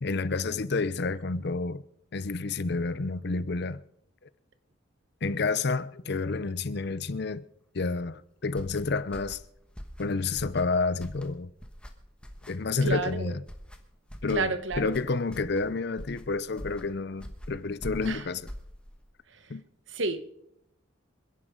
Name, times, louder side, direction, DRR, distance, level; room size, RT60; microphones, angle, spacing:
voice 1, 0.0-1.8 2.1-3.8 5.2-7.4 7.7-9.4 10.0-11.5 12.5-13.4 14.2-18.5 19.5-19.6, left 3 dB, 55° left, 0.6 m, -29 dB
sound 1, 8.5-19.1, equal, 5° left, 1.3 m, -44 dB
voice 2, 12.8-13.3 14.3-15.0 18.0-18.2 19.9-20.2, right 3 dB, 65° right, 1.2 m, -30 dB
27.0 x 10.5 x 3.8 m
head